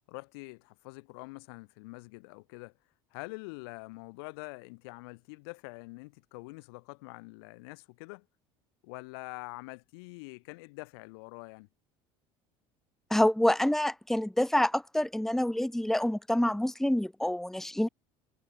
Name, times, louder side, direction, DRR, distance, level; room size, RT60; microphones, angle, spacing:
voice 1, 0.1-2.7 3.1-8.3 8.8-11.7, left 28 dB, 80° left, 2.9 m, -45 dB
voice 2, 13.1-17.9, left 1 dB, 5° left, 1.6 m, -27 dB
supercardioid pair, 90°, 13 cm